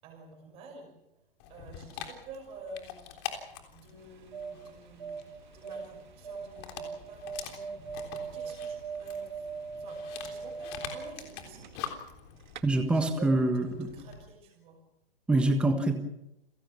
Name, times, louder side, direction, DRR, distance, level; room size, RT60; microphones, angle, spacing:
voice 1, 0.0-1.0 1.5-3.3 3.7-5.2 5.5-9.5 9.8-11.7 12.7-14.8, right 2 dB, 20° right, 2 dB, 5.8 m, -49 dB
Dog, 1.4-14.3, left 9 dB, 25° left, 3.6 m, -45 dB
sound 1, 4.0-12.2 12.5-12.6, right 5 dB, 50° right, 2.0 m, -40 dB
voice 2, 12.6-13.9 15.3-16.0, right 2 dB, 5° right, 6 dB, 1.4 m, -25 dB
29.5 x 17.5 x 7.0 m, 0.87 s
hypercardioid pair, 155°, 30 cm